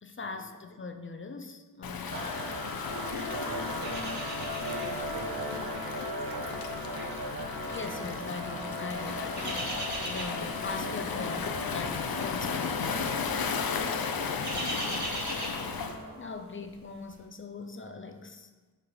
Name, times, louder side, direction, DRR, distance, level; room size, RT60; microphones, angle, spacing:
voice 1, 0.0-2.4 7.7-9.7 10.1-12.9 16.2-18.5, left 3 dB, 35° left, 7 dB, 0.7 m, -40 dB
Waves surf, 1.8-16.0, left 6 dB, 75° left, 0.8 m, -35 dB
sound 1, 2.1-16.3, equal, 35° right, 1.9 m, -39 dB
voice 2, 2.6-4.2 4.5-7.1 7.7-8.0 13.7-14.2 14.5-15.3, equal, 80° right, 1 dB, 1.5 m, -44 dB
sound 2, 3.8-5.1 5.4-5.7 6.4-8.1 9.0-10.6 10.9-11.2 11.5-11.6 12.6-13.0 13.3-13.5 13.9-16.2 16.6-16.7, right 2 dB, 50° right, 2.1 m, -39 dB
10.5 x 4.4 x 4.8 m, 1.3 s
wide cardioid pair, 115°, 36 cm